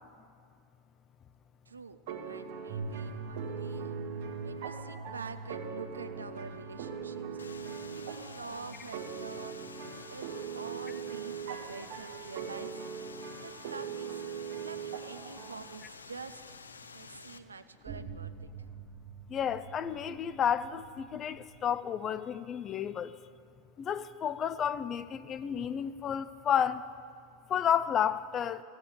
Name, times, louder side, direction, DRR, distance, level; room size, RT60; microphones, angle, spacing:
voice 1, 1.7-2.0 2.2-4.0 4.4-7.4 7.9-9.6 10.1-10.3 10.5-12.9 13.4-14.3 14.6-16.4 16.9-18.5, right 5 dB, 90° right, 0.5 m, -46 dB
sound 1, 2.1-15.8, right 7 dB, 65° right, 1.4 m, -41 dB
sound 2, 2.7-12.0 12.9-13.0 17.9-21.8, right 3 dB, 40° right, 1.2 m, -46 dB
sound 3, 7.4-17.4, left 4 dB, 90° left, 0.5 m, -50 dB
voice 2, 19.3-23.1 23.8-26.8 27.5-28.6, left 8 dB, 35° left, 0.6 m, -31 dB
14.5 x 8.0 x 8.8 m
hypercardioid pair, 90°, 0 cm